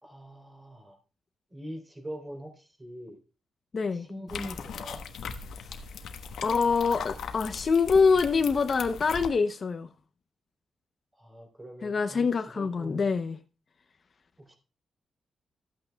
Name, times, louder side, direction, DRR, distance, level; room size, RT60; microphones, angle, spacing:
voice 1, 0.0-1.0 1.5-3.2 3.9-5.0 11.2-13.1 14.4-14.5, equal, 20° right, 3.3 m, -43 dB
voice 2, 3.7-4.1 6.4-9.9 11.8-13.4, left 5 dB, 45° left, 0.7 m, -25 dB
sound 1, 4.3-9.3, left 6 dB, 90° left, 1.1 m, -39 dB
15.0 x 8.9 x 2.3 m
cardioid pair, 110°, 0 cm